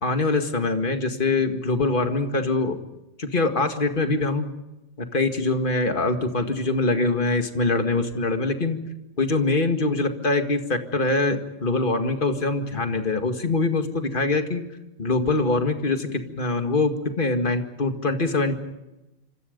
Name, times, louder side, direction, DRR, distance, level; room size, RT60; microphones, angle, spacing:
voice 1, 0.0-2.8 3.2-4.5 5.0-8.8 9.2-14.6 15.0-18.5, left 3 dB, 40° left, 6 dB, 2.2 m, -23 dB
27.0 x 26.5 x 5.3 m, 0.96 s
omnidirectional pair, 1.3 m